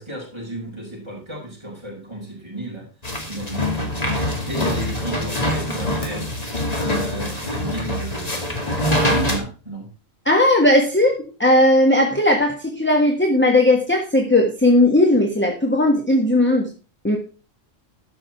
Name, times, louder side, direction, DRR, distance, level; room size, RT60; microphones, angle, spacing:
voice 1, 0.0-2.9 3.3-4.0 4.4-6.3 6.7-9.9, right 1 dB, 20° right, -4 dB, 6.0 m, -33 dB
sound 1, 3.0-9.4, left 1 dB, 30° left, 2.5 m, -24 dB
voice 2, 10.2-16.7 17.0-17.2, left 1 dB, 10° left, 2 dB, 1.5 m, -17 dB
13.0 x 6.3 x 4.5 m, 0.36 s
omnidirectional pair, 1.3 m